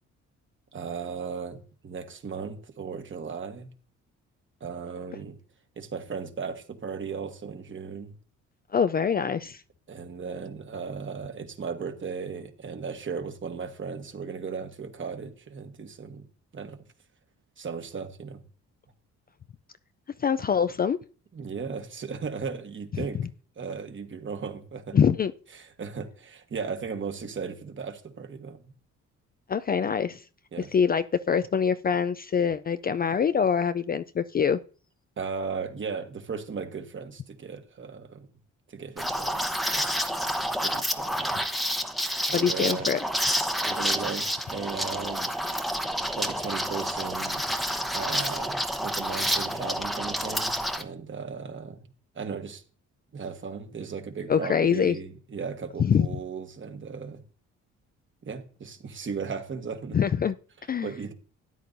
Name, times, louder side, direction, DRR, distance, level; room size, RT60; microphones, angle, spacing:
voice 1, 0.7-3.7 4.6-5.4 5.8-8.2 9.9-16.2 16.5-16.8 17.6-18.4 21.3-23.2 23.6-25.0 25.5-28.7 30.5-30.7 35.2-38.3 38.7-39.9 40.6-41.4 42.3-43.0 43.6-45.3 46.2-47.5 47.9-51.9 52.1-52.6 53.1-57.2 58.3-60.1 60.8-61.1, right 5 dB, 40° right, 1.4 m, -36 dB
voice 2, 8.7-9.6 20.2-21.0 24.9-25.3 29.5-30.2 30.6-34.6 42.3-43.0 54.3-55.0 55.8-56.1 59.9-60.4 60.7-60.9, left 7 dB, 30° left, 0.4 m, -24 dB
Liquid, 39.0-50.8, equal, ahead, 0.9 m, -29 dB
13.0 x 9.4 x 2.6 m
cardioid pair, 90°, 30 cm